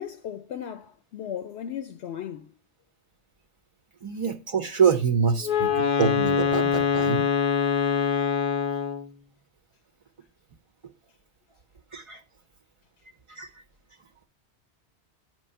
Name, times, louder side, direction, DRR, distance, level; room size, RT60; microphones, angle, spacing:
voice 1, 0.0-2.6, left 9 dB, 75° left, 0.8 m, -36 dB
voice 2, 4.0-7.3 11.9-12.2 13.3-13.5, right 6 dB, 40° right, 0.4 m, -25 dB
Wind instrument woodwind instrument, 5.4-9.1, left 7 dB, 55° left, 0.6 m, -24 dB
8.5 x 3.1 x 5.4 m
omnidirectional pair, 1.1 m